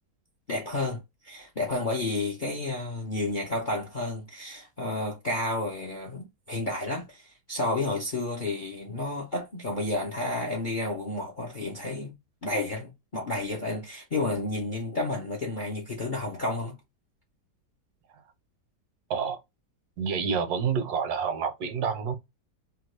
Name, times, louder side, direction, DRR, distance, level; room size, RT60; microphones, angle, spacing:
voice 1, 0.5-12.1 12.4-16.8, left 2 dB, 50° left, 0.6 m, -31 dB
voice 2, 20.0-22.2, right 6 dB, 75° right, 1.1 m, -28 dB
3.0 x 2.3 x 3.1 m
omnidirectional pair, 1.8 m